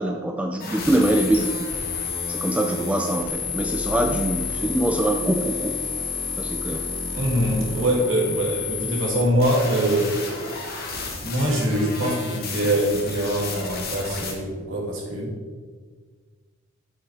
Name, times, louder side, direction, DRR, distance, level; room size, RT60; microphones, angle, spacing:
voice 1, 0.0-1.7 2.3-5.8 6.4-6.9, right 1 dB, 5° right, 4 dB, 0.3 m, -24 dB
sound 1, 0.6-14.3, left 4 dB, 45° left, 1.6 m, -31 dB
voice 2, 7.1-10.1 10.5-10.7 11.2-15.3, right 1 dB, 60° right, -2 dB, 2.4 m, -23 dB
8.4 x 6.3 x 4.8 m, 1.5 s
head